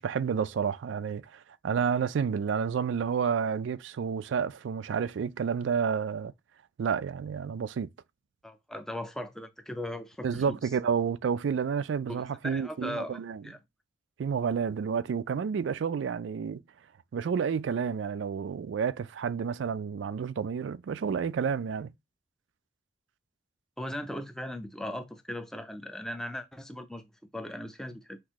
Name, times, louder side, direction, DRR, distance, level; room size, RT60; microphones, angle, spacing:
voice 1, 0.0-6.3 6.8-7.9 10.2-13.4 14.2-16.6 17.1-21.9, right 6 dB, 85° right, 0.4 m, -30 dB
voice 2, 8.4-10.6 12.1-13.6 23.8-28.2, left 1 dB, 5° left, 0.5 m, -38 dB
5.9 x 2.6 x 3.0 m
head